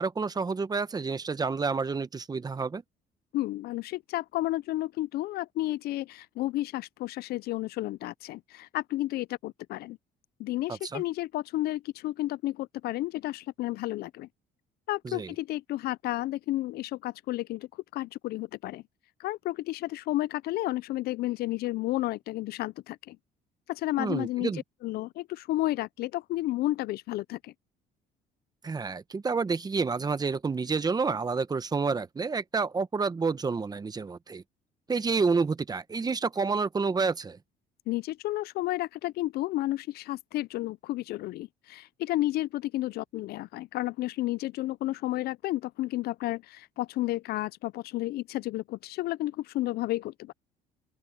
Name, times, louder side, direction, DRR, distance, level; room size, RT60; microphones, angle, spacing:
voice 1, 0.0-2.8 10.9-11.0 15.0-15.3 24.0-24.6 28.6-34.4 34.9-37.4, right 4 dB, 25° right, 1.0 m, -29 dB
voice 2, 3.3-10.0 10.4-14.3 14.9-18.8 19.2-23.2 23.7-27.5 37.9-50.3, left 16 dB, 70° left, 0.4 m, -32 dB
open air
cardioid pair, 110°, 17 cm